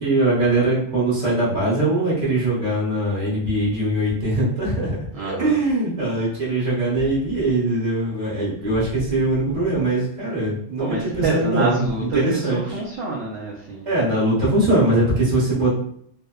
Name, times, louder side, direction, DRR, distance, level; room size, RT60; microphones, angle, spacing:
voice 1, 0.0-5.0 5.3-12.8 13.8-15.8, right 2 dB, 35° right, -7 dB, 1.1 m, -21 dB
voice 2, 5.1-5.5 10.8-13.9, right 3 dB, 65° right, -4 dB, 0.7 m, -27 dB
2.7 x 2.0 x 2.3 m, 0.65 s
omnidirectional pair, 1.3 m